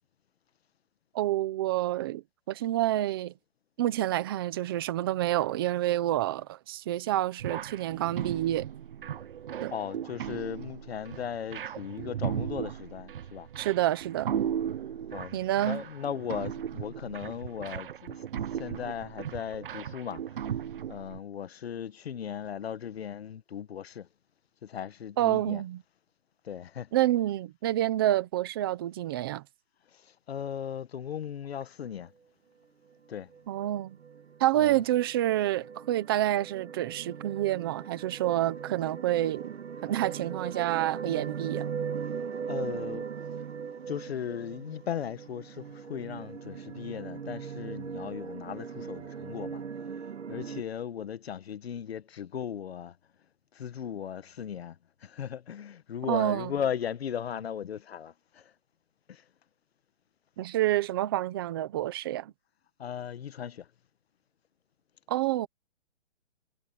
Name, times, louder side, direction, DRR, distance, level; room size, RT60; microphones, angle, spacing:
voice 1, 1.1-2.2 2.5-3.3 3.8-8.7 9.6-9.7 13.6-14.5 15.3-15.8 25.2-25.8 26.9-29.4 33.5-34.0 34.4-39.5 39.8-41.7 56.1-56.5 60.4-62.3 65.1-65.5, right 14 dB, 20° right, 1.1 m, -28 dB
sound 1, 7.4-21.2, right 9 dB, 45° right, 1.0 m, -36 dB
voice 2, 9.7-13.5 15.1-18.2 18.5-20.2 20.9-24.1 24.6-25.6 26.4-26.9 29.9-32.1 33.1-33.3 34.5-34.8 42.5-43.1 43.9-49.6 50.3-53.0 53.5-58.5 59.1-59.2 62.8-63.7, left 8 dB, 55° left, 1.4 m, -37 dB
sound 2, 33.3-50.6, right 6 dB, 70° right, 2.3 m, -39 dB
hypercardioid pair, 175°, 36 cm